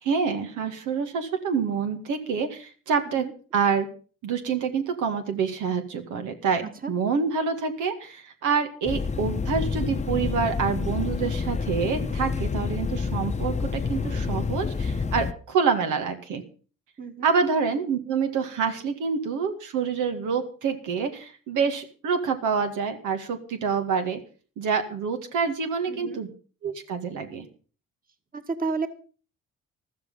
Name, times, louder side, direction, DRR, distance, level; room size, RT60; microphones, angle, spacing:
voice 1, 0.0-3.3 3.5-3.9 4.2-6.6 6.9-16.4 17.2-24.2 24.6-26.3 26.6-27.5, right 5 dB, 85° right, 6 dB, 2.1 m, -27 dB
sound 1, 8.9-15.3, left 5 dB, 25° left, 0.9 m, -28 dB
voice 2, 17.0-17.3 25.9-26.2 28.3-28.9, right 4 dB, 30° right, 8 dB, 2.0 m, -31 dB
13.5 x 13.0 x 5.6 m, 0.39 s
cardioid pair, 90°, 30 cm